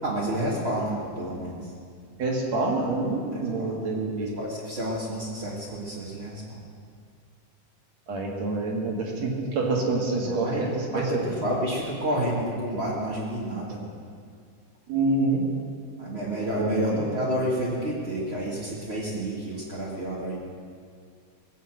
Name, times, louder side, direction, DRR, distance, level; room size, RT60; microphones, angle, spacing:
voice 1, 0.0-1.7 3.6-3.8 4.4-6.7 10.2-10.6 10.9-13.9 16.0-20.4, right 1 dB, 25° right, -7 dB, 1.7 m, -30 dB
voice 2, 2.2-4.4 8.1-11.2 14.9-15.4 16.6-17.0, right 2 dB, 60° right, 0 dB, 3.1 m, -27 dB
20.5 x 8.1 x 7.8 m, 2.2 s
omnidirectional pair, 3.5 m